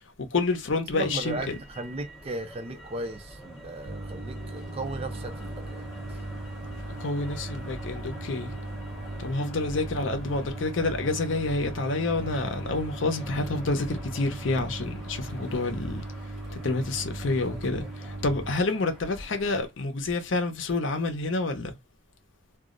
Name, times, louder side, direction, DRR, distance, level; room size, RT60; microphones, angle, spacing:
voice 1, 0.2-1.6 7.0-8.5 9.2-16.0 16.5-21.7, left 3 dB, 65° left, 0.6 m, -28 dB
voice 2, 0.9-6.2 8.9-9.2, right 2 dB, 30° right, 0.4 m, -37 dB
Motor vehicle (road), 1.2-19.7, equal, ahead, 0.8 m, -45 dB
sound 1, 3.8-18.5, right 2 dB, 90° right, 0.9 m, -38 dB
2.3 x 2.0 x 3.6 m
head